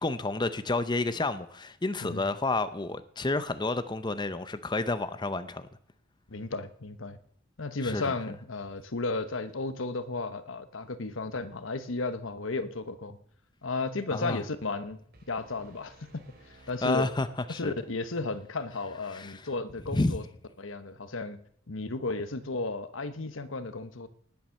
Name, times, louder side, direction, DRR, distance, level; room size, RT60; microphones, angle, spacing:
voice 1, 0.0-5.7 7.8-8.1 14.1-14.4 16.8-17.7 19.1-19.5 19.9-20.2, left 2 dB, 20° left, 0.7 m, -30 dB
voice 2, 6.3-7.2 7.6-13.2 13.6-15.0 15.3-16.2 16.7-17.1 17.5-20.2 20.6-21.4 21.7-24.1, left 3 dB, 70° left, 1.1 m, -34 dB
sound 1, 15.1-18.1, right 1 dB, 50° right, 3.4 m, -58 dB
19.0 x 7.4 x 6.5 m
head